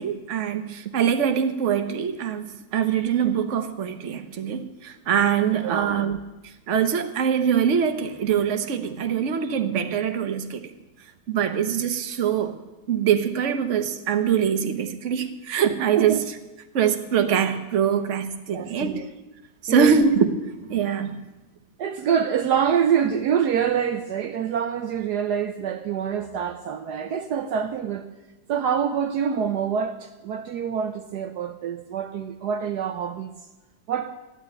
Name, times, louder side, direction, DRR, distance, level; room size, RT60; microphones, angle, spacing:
voice 1, 0.0-6.2 6.4-10.7 11.3-12.5 12.9-16.3 16.7-19.1 19.6-20.3 20.6-21.1, right 7 dB, 45° right, 1.3 m, -23 dB
voice 2, 5.6-6.0 15.8-16.2 18.5-19.1 19.7-20.0 21.8-28.1 28.5-33.3 33.9-34.2, right 8 dB, 70° right, 1.3 m, -26 dB
14.5 x 9.4 x 9.4 m
omnidirectional pair, 1.9 m